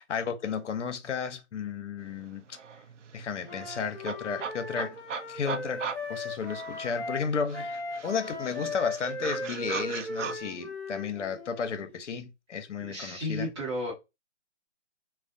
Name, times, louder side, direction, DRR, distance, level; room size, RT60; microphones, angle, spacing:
voice 1, 0.0-2.4 3.1-5.0 5.3-5.8 6.1-13.5, left 6 dB, 80° left, 0.6 m, -33 dB
sound 1, 2.2-2.3 2.5-7.1 7.5-10.4, right 6 dB, 80° right, 0.5 m, -39 dB
Wind instrument woodwind instrument, 3.4-7.3 7.5-11.6, left 2 dB, 15° left, 0.5 m, -38 dB
voice 2, 12.8-13.9, left 1 dB, 25° right, 0.8 m, -33 dB
2.4 x 2.0 x 2.5 m
hypercardioid pair, 150°, 36 cm